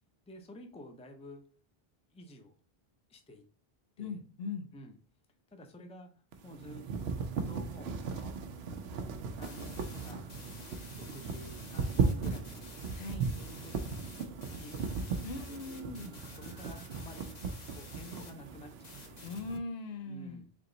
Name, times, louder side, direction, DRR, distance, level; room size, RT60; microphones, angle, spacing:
voice 1, 0.3-1.4 2.1-2.6 3.1-3.4 4.0-4.2 4.7-5.0 5.5-6.8 7.4-8.4 8.9-10.5 11.0-12.7 13.1-13.7 14.5-15.0 15.4-17.4 17.7-19.2 20.1-20.5, left 1 dB, 10° left, 5 dB, 0.4 m, -51 dB
voice 2, 4.0-4.7 12.9-13.3 15.2-16.2 19.2-20.4, left 3 dB, 80° left, 7 dB, 0.9 m, -40 dB
sound 1, 6.3-19.6, right 5 dB, 85° right, 0.8 m, -37 dB
sound 2, 9.4-18.3 18.8-19.4, left 3 dB, 45° left, 0.9 m, -52 dB
3.6 x 2.9 x 3.8 m, 0.37 s
omnidirectional pair, 1.0 m